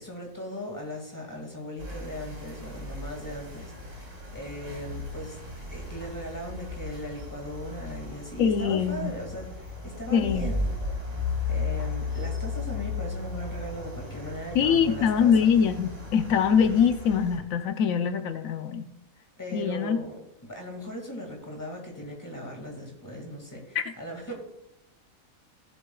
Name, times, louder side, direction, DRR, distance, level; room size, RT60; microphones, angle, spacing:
voice 1, 0.0-5.4 5.7-10.6 11.5-15.5 19.4-20.1 20.4-24.3, equal, 15° left, 0 dB, 2.1 m, -38 dB
sound 1, 1.8-17.4, left 3 dB, 30° right, 2.1 m, -35 dB
voice 2, 8.4-9.1 10.1-10.5 14.5-18.9 19.5-20.0 23.7-23.8, left 7 dB, 85° left, 8 dB, 1.1 m, -23 dB
17.5 x 7.6 x 2.3 m, 0.84 s
omnidirectional pair, 1.4 m